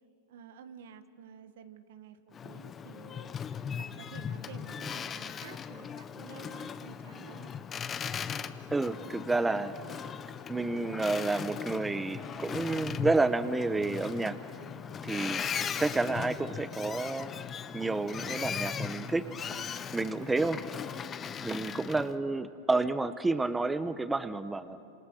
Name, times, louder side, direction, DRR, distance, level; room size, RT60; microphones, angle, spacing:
voice 1, 0.3-3.3 3.8-7.5, right 8 dB, 70° right, 10 dB, 1.5 m, -51 dB
Boat Water vehicle, 2.3-22.1, left 7 dB, 25° left, 0.9 m, -38 dB
voice 2, 8.7-9.7 10.5-14.4 15.0-15.4 15.8-17.3 17.7-19.3 19.9-20.6 21.4-24.8, right 3 dB, 10° right, 12 dB, 0.9 m, -30 dB
28.0 x 27.0 x 6.4 m, 2.6 s
hypercardioid pair, 115°, 0 cm